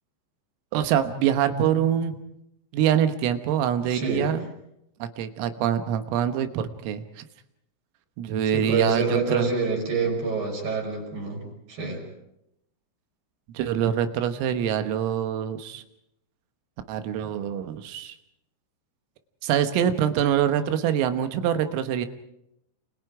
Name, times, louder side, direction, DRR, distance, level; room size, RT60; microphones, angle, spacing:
voice 1, 0.7-2.2 2.7-4.5 5.0-7.3 8.2-9.5 13.6-15.8 16.9-18.2 19.4-22.1, right 9 dB, 85° right, 9 dB, 3.9 m, -25 dB
voice 2, 3.8-4.3 8.5-11.4 11.7-12.0, right 4 dB, 45° right, -1 dB, 6.8 m, -27 dB
29.0 x 28.5 x 4.9 m, 0.82 s
omnidirectional pair, 5.8 m